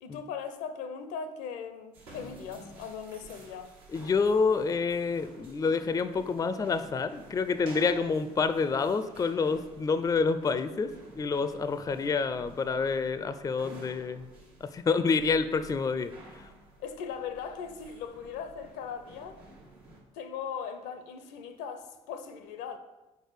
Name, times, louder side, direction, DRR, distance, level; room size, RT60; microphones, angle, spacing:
voice 1, 0.0-3.7 16.8-19.4 20.1-22.8, left 6 dB, 70° left, 0.5 m, -39 dB
sound 1, 1.9-20.0, right 2 dB, 85° right, 1.3 m, -52 dB
voice 2, 3.9-10.9 11.2-14.3 14.6-16.1, left 4 dB, 20° left, 0.4 m, -28 dB
4.6 x 4.3 x 4.9 m
hypercardioid pair, 50°, 18 cm